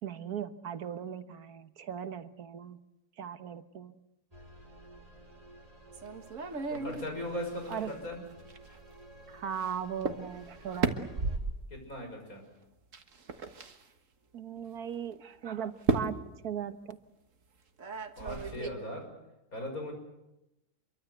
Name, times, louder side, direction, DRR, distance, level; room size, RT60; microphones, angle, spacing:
voice 1, 0.0-2.8 3.2-4.0 7.7-7.9 9.3-11.0 14.3-16.2 16.4-17.0, right 8 dB, 85° right, 10 dB, 1.7 m, -38 dB
sound 1, 4.3-11.4, right 2 dB, 25° right, 3.4 m, -53 dB
sound 2, 5.9-8.8 9.6-9.7 10.0-10.2 10.5-11.7 12.9-13.8 14.6-14.7 15.8-16.2 17.8-18.7, right 4 dB, 60° right, 1.9 m, -33 dB
voice 2, 6.7-8.2 11.7-12.4 18.2-19.1 19.5-19.9, left 1 dB, 70° left, 3 dB, 6.6 m, -38 dB
26.5 x 23.5 x 8.0 m, 0.92 s
omnidirectional pair, 1.6 m